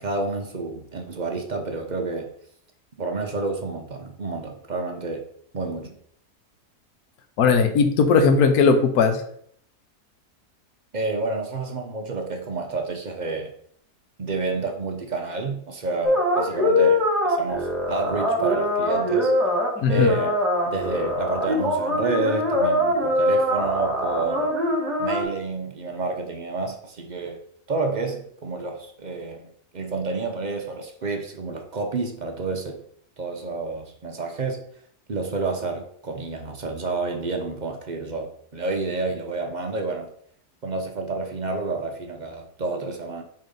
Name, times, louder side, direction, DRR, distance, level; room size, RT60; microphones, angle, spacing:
voice 1, 0.0-2.3 3.0-5.2 5.5-6.0 10.9-13.5 14.2-19.3 19.9-20.3 20.7-24.5 25.0-27.4 27.7-29.5 29.7-32.8 33.2-34.6 35.1-40.1 40.6-43.2, right 3 dB, 50° right, 3 dB, 0.5 m, -29 dB
voice 2, 7.4-9.2 19.8-20.1, left 5 dB, 70° left, 7 dB, 1.3 m, -18 dB
sound 1, 16.0-25.2, left 1 dB, ahead, 1.4 m, -23 dB
5.0 x 3.8 x 5.2 m, 0.66 s
omnidirectional pair, 1.7 m